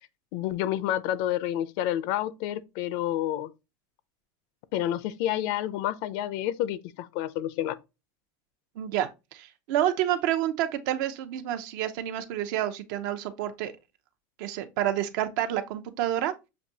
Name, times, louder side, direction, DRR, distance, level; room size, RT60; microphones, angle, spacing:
voice 1, 0.3-3.5 4.7-7.8, left 12 dB, 60° left, 0.5 m, -29 dB
voice 2, 8.8-13.7 14.4-16.3, right 12 dB, 70° right, 0.7 m, -29 dB
7.0 x 2.6 x 2.7 m
supercardioid pair, 150°, 11 cm